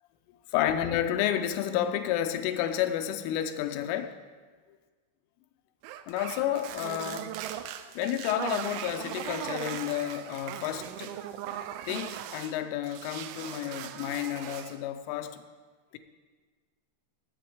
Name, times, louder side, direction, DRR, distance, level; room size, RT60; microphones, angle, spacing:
voice 1, 0.5-4.1 6.1-7.4 8.0-11.1 11.9-15.4, left 11 dB, 90° left, 8 dB, 3.3 m, -30 dB
sound 1, 5.8-12.6 12.8-14.8, right 11 dB, 80° right, 2.9 m, -39 dB
17.0 x 7.7 x 4.8 m, 1.5 s
omnidirectional pair, 5.5 m